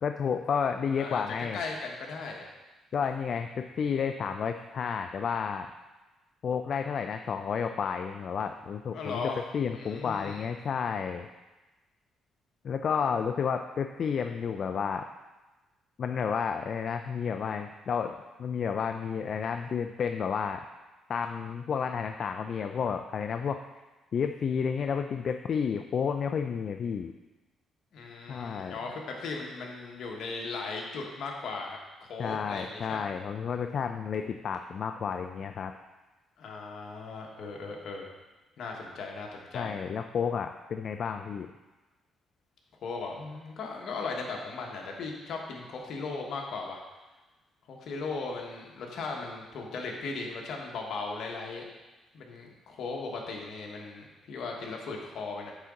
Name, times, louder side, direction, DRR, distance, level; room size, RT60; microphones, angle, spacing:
voice 1, 0.0-1.6 2.9-5.7 6.4-9.2 9.5-11.3 12.6-15.1 16.0-20.6 21.1-23.6 24.1-27.1 28.3-28.8 32.2-35.7 39.5-41.5, left 6 dB, 55° left, 6 dB, 0.3 m, -31 dB
voice 2, 1.5-2.4 8.9-9.4 9.7-10.4 27.9-33.0 36.4-38.1 38.6-39.7 42.8-46.8 47.7-51.6 52.1-55.5, left 4 dB, 70° left, 0 dB, 1.2 m, -37 dB
8.8 x 4.0 x 3.7 m, 1.1 s
cardioid pair, 90°, 0 cm